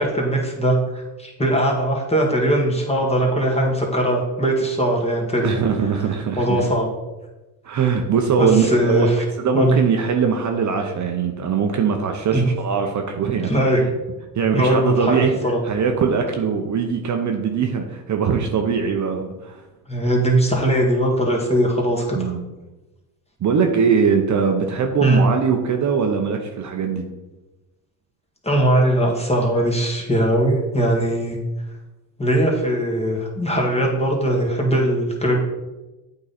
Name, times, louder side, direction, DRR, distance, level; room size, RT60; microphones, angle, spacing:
voice 1, 0.0-5.5 6.4-6.9 8.4-9.2 9.5-9.8 12.3-12.5 13.5-13.8 14.5-15.6 19.9-22.3 25.0-25.2 28.4-31.4 32.2-35.4, right 1 dB, 15° left, -1 dB, 1.9 m, -20 dB
voice 2, 5.4-6.6 7.6-9.1 9.4-13.5 13.8-13.9 14.3-15.4 15.6-19.6 22.1-22.5 23.4-27.1, right 6 dB, 45° right, 3 dB, 0.8 m, -21 dB
8.3 x 3.9 x 4.1 m, 1.1 s
cardioid pair, 90°, 42 cm